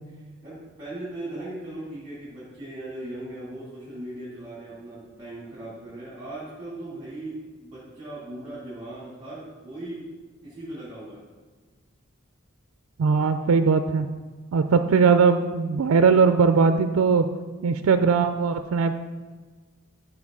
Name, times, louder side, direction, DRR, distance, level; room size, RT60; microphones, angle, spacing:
voice 1, 0.4-10.1 10.4-11.2, right 1 dB, 25° right, -8 dB, 2.2 m, -38 dB
voice 2, 13.0-14.1 14.5-17.3 17.6-19.0, right 5 dB, 75° right, 9 dB, 0.4 m, -20 dB
12.0 x 4.7 x 3.7 m, 1.4 s
head